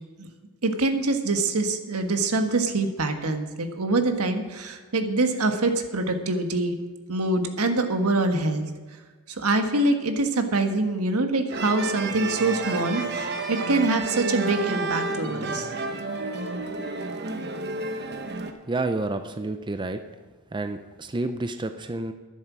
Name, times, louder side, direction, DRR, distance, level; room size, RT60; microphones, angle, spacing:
voice 1, 0.6-6.7 7.1-8.7 9.3-15.7, right 2 dB, 75° right, 6 dB, 1.4 m, -25 dB
sound 1, 11.5-18.5, right 3 dB, 50° right, 1.1 m, -31 dB
voice 2, 18.7-20.0 20.5-22.1, right 2 dB, 20° right, 8 dB, 0.5 m, -29 dB
12.5 x 11.0 x 6.1 m, 1.4 s
head